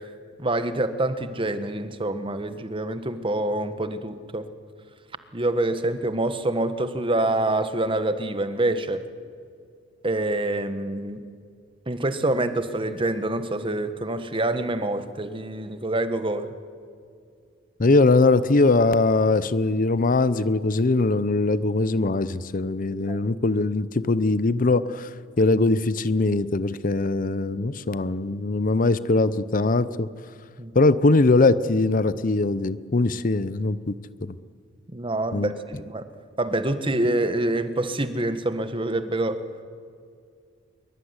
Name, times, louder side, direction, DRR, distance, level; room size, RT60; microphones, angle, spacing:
voice 1, 0.4-4.5 5.3-9.0 10.0-11.2 11.9-16.5 23.1-23.2 30.6-30.7 34.9-36.0 36.4-39.4, right 2 dB, 25° right, 10 dB, 1.4 m, -26 dB
voice 2, 17.8-25.1 25.4-30.1 30.7-34.0 34.2-34.4 35.3-35.5, left 3 dB, 45° left, 16 dB, 0.7 m, -21 dB
24.0 x 23.5 x 9.7 m, 2.2 s
head